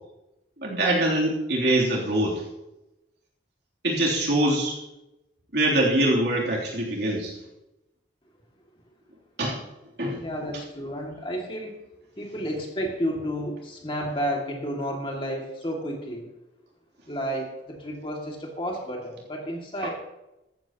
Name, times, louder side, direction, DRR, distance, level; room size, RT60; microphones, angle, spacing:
voice 1, 0.6-2.4 3.8-4.8 5.5-7.3 9.4-9.6 10.0-10.2, right 1 dB, 65° right, -3 dB, 3.2 m, -23 dB
voice 2, 10.2-11.8 12.2-16.3 17.1-19.9, equal, 30° left, 0 dB, 2.3 m, -31 dB
14.5 x 14.0 x 3.0 m, 0.93 s
head